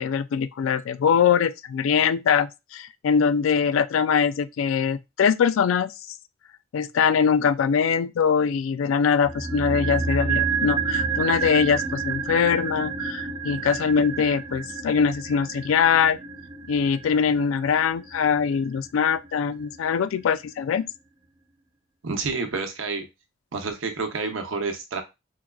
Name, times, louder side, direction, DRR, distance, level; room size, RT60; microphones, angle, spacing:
voice 1, 0.0-5.9 6.7-16.2 16.7-20.9, left 6 dB, 80° left, 0.3 m, -22 dB
sound 1, 9.2-19.5 19.7-19.8, right 5 dB, 20° right, 0.4 m, -29 dB
voice 2, 22.0-23.1 23.5-25.0, right 4 dB, 75° right, 0.7 m, -29 dB
4.6 x 2.4 x 2.3 m
head